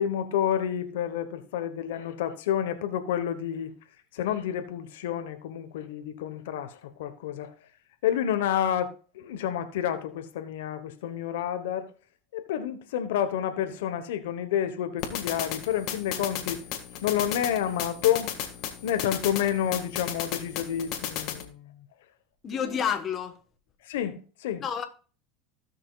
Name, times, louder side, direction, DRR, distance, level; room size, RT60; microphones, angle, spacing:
voice 1, 0.0-3.7 4.1-7.5 8.0-11.9 12.3-16.6 17.0-18.3 18.8-21.8 22.5-22.8 23.8-24.6, left 10 dB, 85° left, 1.1 m, -29 dB
sound 1, 15.0-21.4, left 9 dB, 55° left, 1.8 m, -35 dB
voice 2, 22.4-23.4 24.6-24.8, left 7 dB, 35° left, 1.2 m, -29 dB
16.0 x 6.1 x 2.4 m
supercardioid pair, 120°, 0 cm